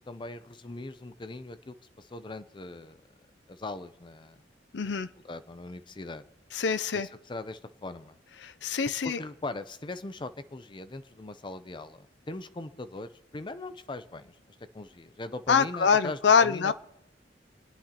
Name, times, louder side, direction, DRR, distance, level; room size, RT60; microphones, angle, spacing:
voice 1, 0.1-3.0 3.5-4.4 5.2-6.2 6.9-8.2 9.0-14.4 14.7-16.7, left 2 dB, 25° left, 12 dB, 0.5 m, -40 dB
voice 2, 4.7-5.1 6.5-7.1 8.4-9.2 15.5-16.7, left 6 dB, 70° left, 13 dB, 0.5 m, -24 dB
29.0 x 9.8 x 2.9 m, 0.89 s
head